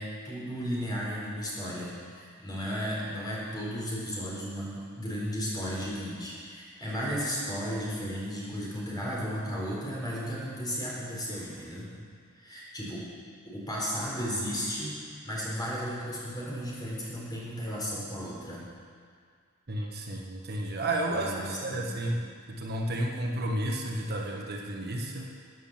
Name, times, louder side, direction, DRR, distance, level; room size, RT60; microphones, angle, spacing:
voice 1, 0.0-11.9 12.3-13.0 13.4-18.6 21.1-22.2, equal, 20° left, -5 dB, 4.2 m, -34 dB
voice 2, 19.7-25.3, right 1 dB, 50° right, 0 dB, 1.2 m, -32 dB
14.5 x 9.2 x 7.5 m, 2.1 s
head